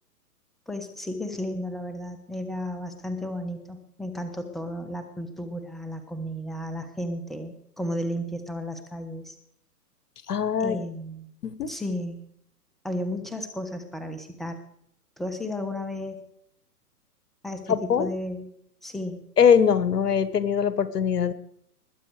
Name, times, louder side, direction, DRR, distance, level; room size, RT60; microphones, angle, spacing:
voice 1, 0.7-9.3 10.6-11.3 11.7-12.2 12.8-14.6 15.2-16.2 17.4-18.5 18.8-19.2, left 1 dB, ahead, 7 dB, 1.2 m, -33 dB
voice 2, 10.3-10.8 11.4-11.7 17.7-18.1 19.4-21.3, left 7 dB, 75° left, 15 dB, 1.4 m, -22 dB
21.0 x 8.1 x 4.8 m, 0.69 s
hypercardioid pair, 130°, 47 cm